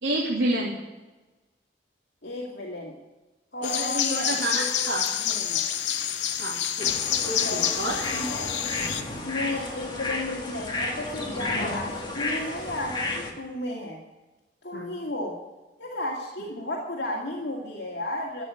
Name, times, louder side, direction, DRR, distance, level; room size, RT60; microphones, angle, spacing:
voice 1, 0.0-0.8 3.6-5.0 6.4-8.0 14.7-15.0, right 1 dB, 85° right, -5 dB, 2.8 m, -29 dB
voice 2, 2.2-3.0 3.5-5.6 7.4-7.6 8.1-8.9 9.3-14.0 14.6-15.4 15.8-18.5, left 1 dB, 75° left, -2 dB, 2.3 m, -34 dB
sound 1, 3.6-9.0, left 10 dB, 90° left, 0.9 m, -28 dB
sound 2, 6.8-13.3, left 2 dB, 25° left, 2.1 m, -32 dB
13.0 x 8.1 x 9.8 m, 1.1 s
head